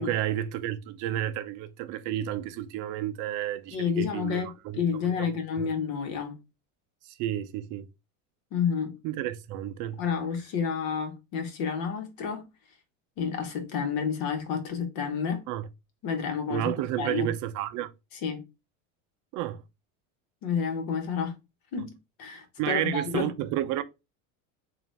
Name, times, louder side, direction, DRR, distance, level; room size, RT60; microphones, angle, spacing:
voice 1, 0.0-4.8 5.0-5.3 5.6-5.7 7.1-7.9 9.0-10.0 15.5-15.7 16.5-17.9 19.3-19.6 22.6-23.8, right 12 dB, 50° right, 0.5 m, -31 dB
voice 2, 3.7-6.4 8.5-9.0 10.0-12.5 13.2-15.4 16.0-16.7 17.0-17.3 18.2-18.5 20.4-21.3 21.7-23.3, left 6 dB, 60° left, 1.2 m, -30 dB
3.8 x 2.5 x 3.3 m
supercardioid pair, 115°, 40 cm